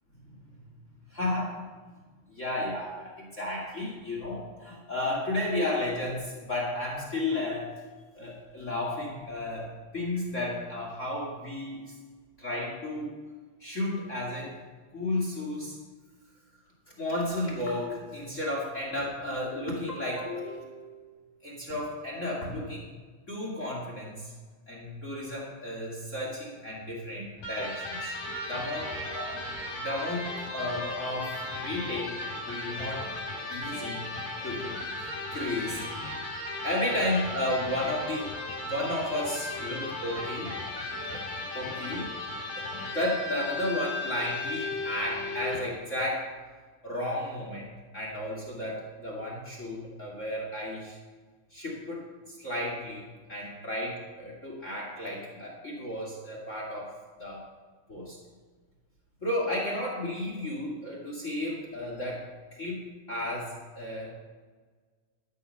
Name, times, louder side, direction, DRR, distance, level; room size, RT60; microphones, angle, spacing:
voice 1, 1.1-1.6 2.3-7.8 8.1-11.9 12.4-13.2 13.6-14.6 14.9-15.8 17.0-21.1 21.4-22.9 23.3-24.3 24.7-28.1 28.5-29.4 29.7-33.1 33.5-34.1 34.4-34.8 35.3-35.8 36.6-38.3 38.6-40.5 41.1-41.2 41.5-42.1 42.5-46.3 46.8-51.0 51.5-56.9 57.2-57.4 57.9-58.2 59.2-62.3 62.6-64.1, left 1 dB, 25° left, -3 dB, 2.5 m, -33 dB
Electric guitar, 27.4-45.8, left 2 dB, 75° left, 5.4 m, -36 dB
13.0 x 8.5 x 5.7 m, 1.4 s
omnidirectional pair, 3.5 m